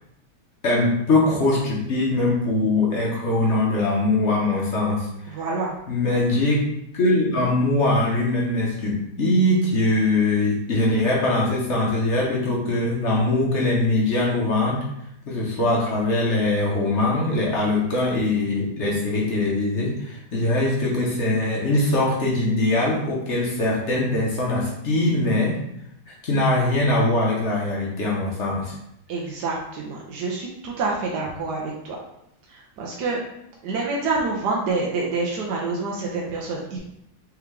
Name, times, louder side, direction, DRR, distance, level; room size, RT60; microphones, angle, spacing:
voice 1, 0.6-5.4 5.9-14.8 15.3-25.6 26.1-28.8, left 2 dB, 55° left, -3 dB, 0.8 m, -22 dB
voice 2, 5.3-5.7 29.1-32.0 32.5-33.2 33.6-36.8, right 3 dB, 70° right, -2 dB, 1.2 m, -27 dB
3.5 x 3.5 x 3.2 m, 0.78 s
omnidirectional pair, 2.0 m